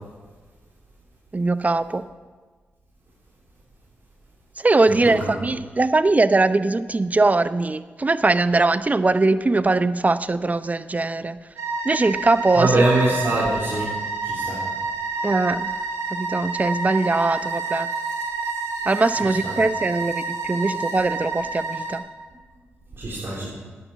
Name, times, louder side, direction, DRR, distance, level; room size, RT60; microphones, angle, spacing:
voice 1, 1.3-2.0 4.6-11.4 11.8-12.8 15.2-15.7 16.1-17.9 18.9-22.0, right 3 dB, 30° right, 13 dB, 0.7 m, -21 dB
sound 1, 11.6-22.0, right 3 dB, 85° right, 3.0 m, -29 dB
voice 2, 12.6-13.9 14.2-14.6 19.4-19.5 23.0-23.5, right 2 dB, 55° right, -6 dB, 3.6 m, -22 dB
11.0 x 9.8 x 7.0 m, 1.4 s
supercardioid pair, 40°, 5 cm